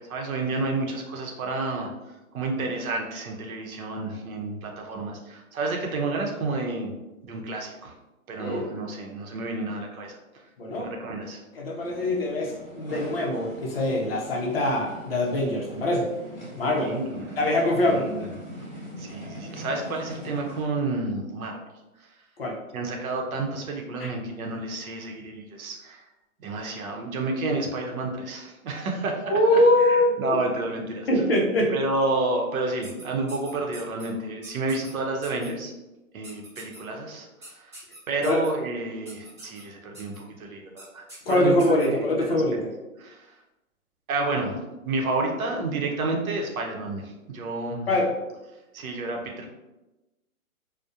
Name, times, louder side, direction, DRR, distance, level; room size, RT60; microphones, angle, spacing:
voice 1, 0.0-1.9 2.3-6.9 7.2-7.9 8.3-10.2 10.8-11.4 16.8-17.4 17.8-18.3 19.0-21.6 22.0-22.2 22.7-26.0 26.4-29.2 29.5-31.1 31.7-35.7 36.1-37.8 38.1-42.4 43.0-43.3 44.1-44.6 44.8-47.9 48.7-49.5, right 2 dB, 75° right, 1 dB, 0.7 m, -30 dB
voice 2, 10.6-10.9 11.5-16.1 16.6-16.9 17.4-18.1 22.4-22.6 24.0-24.1 29.3-30.4 31.1-31.7 38.3-38.4 41.3-42.7 47.9-48.1, left 1 dB, 45° left, -2 dB, 0.5 m, -23 dB
sound 1, 11.8-20.6, equal, 10° left, 0.8 m, -41 dB
sound 2, 32.8-34.1 34.4-34.9 35.2-35.5 36.2-36.8 37.4-38.5 39.1-39.6 39.9-40.2 40.8-40.9 41.1-41.9, right 1 dB, 20° right, 0.6 m, -44 dB
2.7 x 2.1 x 2.3 m, 1.0 s
hypercardioid pair, 165°, 42 cm